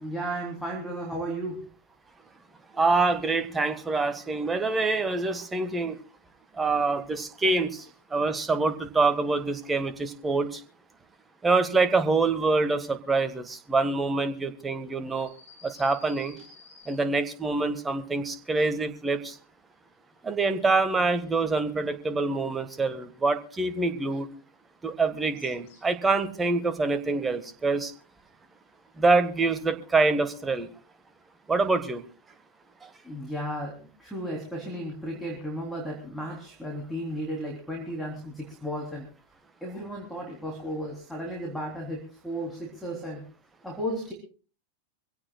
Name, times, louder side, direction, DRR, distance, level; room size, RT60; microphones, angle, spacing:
voice 1, 0.0-1.6 16.4-16.5 18.5-18.6 33.0-33.7 34.0-39.1 39.6-43.2 43.6-44.1, equal, 5° left, 0 dB, 3.4 m, -34 dB
voice 2, 2.7-6.0 6.6-10.6 11.4-15.3 15.6-16.4 16.9-19.4 20.2-24.3 24.8-27.9 29.0-30.7 31.5-32.0 32.8-32.9, right 3 dB, 15° right, 10 dB, 1.5 m, -25 dB
sound 1, 15.1-17.4 25.3-26.1, left 5 dB, 55° left, 6.9 m, -52 dB
24.5 x 16.5 x 2.3 m, 0.37 s
figure-of-eight pair, 90°, 0 cm